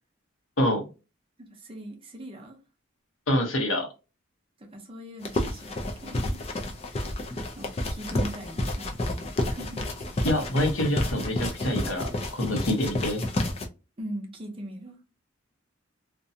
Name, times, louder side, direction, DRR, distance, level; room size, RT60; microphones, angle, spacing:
voice 1, 1.4-2.6 4.6-6.4 7.5-9.2 9.4-9.8 14.0-15.0, right 1 dB, 25° right, 0.7 m, -40 dB
voice 2, 3.3-3.9 10.2-13.2, left 1 dB, 85° left, 0.9 m, -26 dB
sound 1, 5.2-13.7, left 1 dB, 30° left, 0.4 m, -30 dB
2.6 x 2.2 x 2.6 m
head